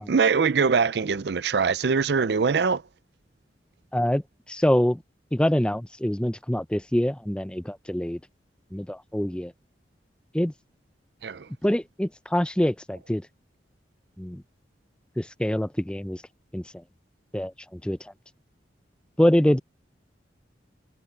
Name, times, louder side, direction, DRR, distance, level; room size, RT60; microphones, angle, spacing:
voice 1, 0.0-2.8 11.2-11.5, right 5 dB, 70° right, 0.5 m, -23 dB
voice 2, 3.9-4.2 4.5-5.0 5.3-8.2 8.7-9.5 10.3-10.5 11.6-13.3 14.2-14.4 15.2-16.2 16.5-16.8 17.3-18.1 19.2-19.6, equal, 5° left, 0.5 m, -25 dB
head